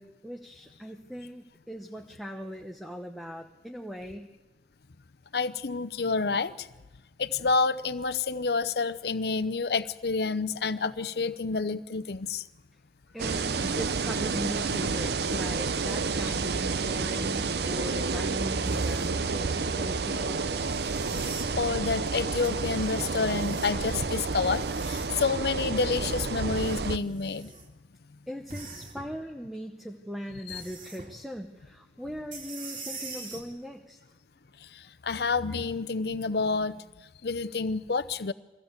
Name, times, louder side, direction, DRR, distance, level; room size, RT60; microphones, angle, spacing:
voice 1, 0.0-4.3 13.1-20.5 28.3-34.0, equal, ahead, 3 dB, 0.9 m, -39 dB
voice 2, 5.3-6.7 7.2-12.4 21.6-27.5 30.5-30.6 34.6-36.8 37.2-38.3, left 4 dB, 60° left, 13 dB, 0.7 m, -29 dB
sound 1, 13.2-27.0, right 4 dB, 65° right, 0.7 m, -30 dB
sound 2, 18.7-19.3 20.7-21.5 22.4-23.8 24.4-25.3 26.4-27.7 28.5-29.2 30.5-31.1 32.3-33.5 35.2-35.3, right 3 dB, 45° right, 2.9 m, -43 dB
21.5 x 15.5 x 8.1 m, 1.1 s
head